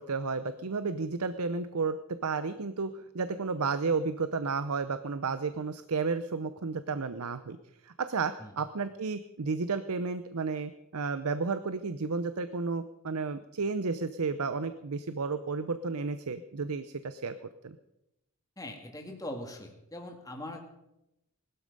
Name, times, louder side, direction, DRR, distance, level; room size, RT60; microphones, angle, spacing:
voice 1, 0.0-2.0 2.2-7.6 7.8-17.3 17.6-17.8, right 4 dB, 80° right, 12 dB, 0.7 m, -32 dB
voice 2, 18.6-20.7, left 1 dB, 15° left, 3 dB, 2.0 m, -41 dB
20.0 x 12.5 x 5.4 m, 0.89 s
head